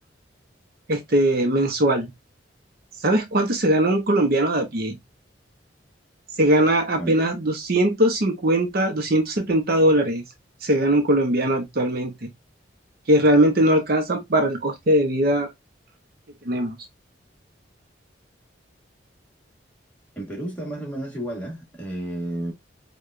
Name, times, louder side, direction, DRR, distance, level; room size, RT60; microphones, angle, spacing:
voice 1, 0.9-2.1 3.0-5.0 6.4-10.2 10.6-12.3 13.1-15.5 16.4-16.8, right 1 dB, 50° right, 0.7 m, -20 dB
voice 2, 20.1-22.5, right 1 dB, 10° left, 1.3 m, -31 dB
4.6 x 2.3 x 2.4 m
head